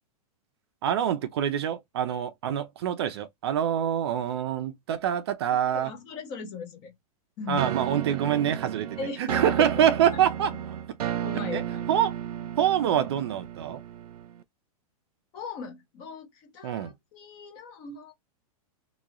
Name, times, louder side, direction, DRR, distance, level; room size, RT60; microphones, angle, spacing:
voice 1, 0.8-5.9 7.5-10.5 11.5-11.6 11.9-12.1 12.6-13.8 16.6-16.9, right 10 dB, 45° right, 0.4 m, -25 dB
voice 2, 5.7-6.9 7.4-7.7 9.0-9.8 10.1-10.2 11.1-11.8 15.3-18.1, left 5 dB, 20° left, 0.6 m, -38 dB
sound 1, 7.6-14.4, right 10 dB, 90° right, 0.6 m, -33 dB
3.0 x 2.3 x 3.6 m
supercardioid pair, 175°, 19 cm